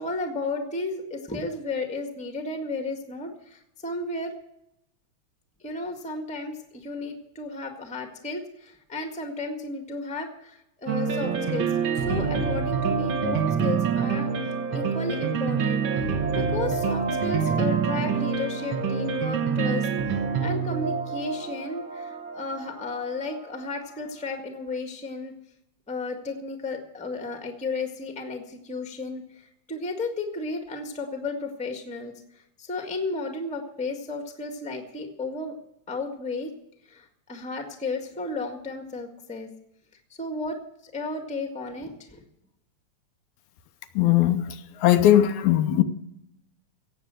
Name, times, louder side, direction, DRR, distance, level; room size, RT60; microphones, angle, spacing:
voice 1, 0.0-4.3 5.6-11.7 11.9-14.3 14.7-19.9 20.4-25.3 25.9-35.5 35.9-36.5 36.9-39.5 40.2-40.6 40.8-42.2, left 3 dB, 5° left, 1.0 m, -33 dB
sound 1, 10.9-23.8, right 6 dB, 50° right, 1.7 m, -27 dB
voice 2, 44.0-44.5 44.8-45.8, left 12 dB, 80° left, 2.2 m, -19 dB
17.0 x 7.8 x 7.6 m
omnidirectional pair, 3.4 m